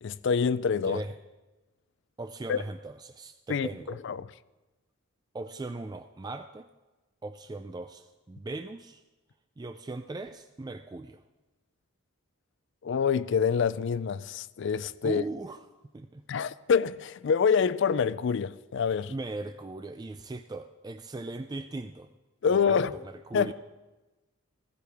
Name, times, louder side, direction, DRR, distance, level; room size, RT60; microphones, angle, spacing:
voice 1, 0.0-1.0 2.5-2.6 3.5-3.7 4.0-4.3 12.8-15.2 16.3-19.1 22.4-22.9 23.3-23.5, left 6 dB, 60° left, 0.4 m, -26 dB
voice 2, 0.8-1.1 2.2-4.0 5.3-6.7 7.2-9.0 9.6-11.2 15.0-15.6 15.9-16.2 19.1-22.1 22.5-23.5, right 2 dB, 20° right, 0.3 m, -39 dB
15.5 x 15.0 x 3.5 m
head